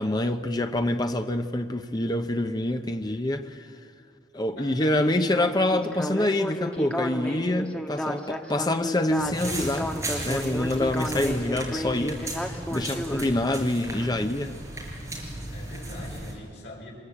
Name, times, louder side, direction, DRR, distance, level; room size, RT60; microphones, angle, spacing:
voice 1, 0.0-3.7 4.3-9.9 10.2-14.5, left 1 dB, 25° left, 0.9 m, -26 dB
voice 2, 4.6-5.0 15.5-16.9, left 2 dB, 75° left, 5.6 m, -43 dB
Speech synthesizer, 4.9-13.3, equal, 5° left, 1.4 m, -32 dB
sound 1, 9.2-16.3, right 1 dB, 15° right, 4.9 m, -35 dB
24.5 x 21.5 x 8.6 m
head